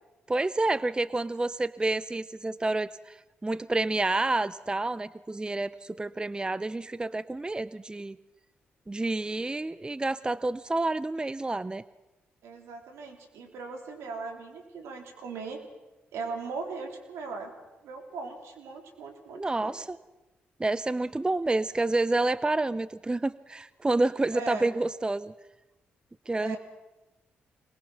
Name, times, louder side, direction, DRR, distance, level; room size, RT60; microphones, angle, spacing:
voice 1, 0.3-3.2 3.4-8.2 8.9-11.8 19.3-20.0 20.6-25.3 26.3-26.6, right 2 dB, 20° right, 18 dB, 0.6 m, -29 dB
voice 2, 12.4-15.6 16.1-17.5 17.8-19.8 24.3-24.7 26.4-26.6, right 4 dB, 80° right, 4 dB, 3.6 m, -39 dB
23.5 x 20.5 x 5.9 m, 1.0 s
supercardioid pair, 50°, 5 cm